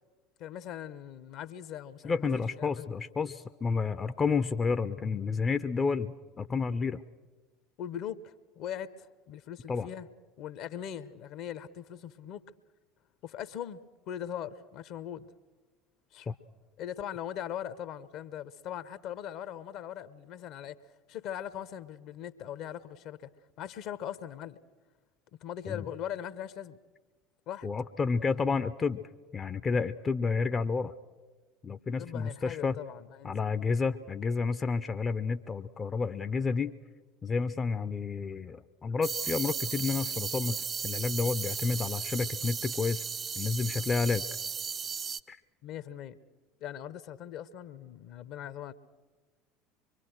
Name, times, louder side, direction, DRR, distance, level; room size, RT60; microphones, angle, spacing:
voice 1, 0.4-2.9 7.8-10.1 10.4-12.4 13.2-15.3 16.1-16.3 16.8-20.8 21.1-23.3 23.6-24.6 25.3-26.8 27.5-27.7 32.0-33.4 45.6-46.2 46.6-48.7, left 10 dB, 50° left, 0.9 m, -40 dB
voice 2, 2.0-7.0 9.7-9.9 16.3-16.4 25.7-25.9 27.6-29.0 29.3-30.9 31.6-32.7 33.2-36.8 37.2-43.0 43.4-44.2 45.3-45.4, left 4 dB, 25° left, 0.6 m, -30 dB
sound 1, 39.0-45.2, right 6 dB, 30° right, 0.6 m, -35 dB
24.5 x 23.5 x 6.5 m
figure-of-eight pair, 65°, 0 cm